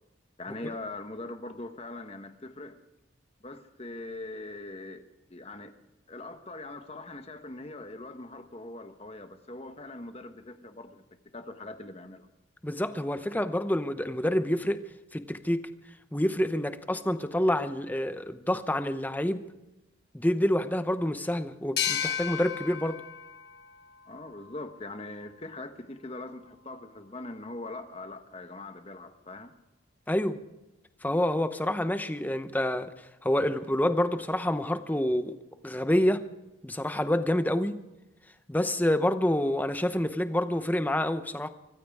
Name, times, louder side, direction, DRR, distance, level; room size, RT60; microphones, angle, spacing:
voice 1, 0.4-2.8 3.4-5.0 5.3-5.7 6.1-11.0 11.3-12.3 24.1-29.5, left 2 dB, 30° left, 8 dB, 1.2 m, -41 dB
voice 2, 12.6-14.8 15.1-15.6 16.1-19.4 20.1-23.0 30.1-30.4 31.0-32.9 33.2-35.4 35.6-36.3 36.6-37.8 38.5-41.5, left 1 dB, 10° left, 10 dB, 0.8 m, -27 dB
sound 1, 21.8-25.1, left 9 dB, 55° left, 1.4 m, -34 dB
24.5 x 15.0 x 3.6 m, 0.99 s
head